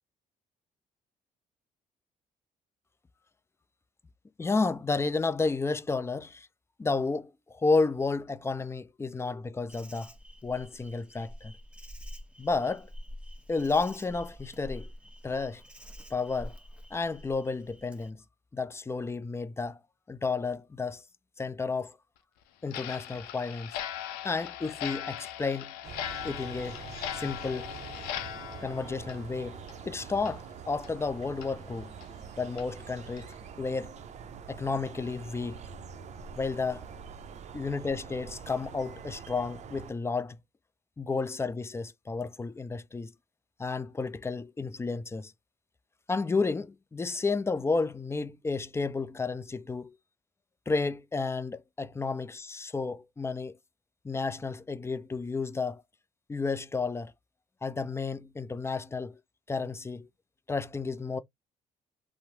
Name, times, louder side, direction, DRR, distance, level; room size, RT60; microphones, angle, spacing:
voice 1, 4.4-6.5 6.8-10.1 10.4-11.5 12.4-12.9 13.5-14.9 15.2-15.6 16.1-16.6 16.9-18.2 18.5-19.8 20.1-21.0 21.4-22.0 22.6-23.7 24.2-25.8 26.2-26.8 27.2-27.7 28.6-29.6 29.9-31.9 32.4-33.9 34.5-35.6 36.3-36.9 37.5-40.4 41.0-43.1 43.6-45.3 46.1-49.9 50.7-53.6 54.0-55.8 56.3-57.1 57.6-59.2 59.5-60.1 60.5-61.2, left 4 dB, 15° left, 0.4 m, -31 dB
Insect, 9.7-18.1, left 1 dB, 5° right, 0.8 m, -47 dB
Clock, 22.7-29.9 30.2-30.3 30.8-30.9 31.4-31.5 32.0-32.1 32.6-32.7 33.2-33.3, left 11 dB, 80° left, 0.5 m, -39 dB
sound 1, 25.8-39.9, right 6 dB, 50° right, 0.5 m, -45 dB
2.9 x 2.0 x 2.7 m
supercardioid pair, 60°, 16 cm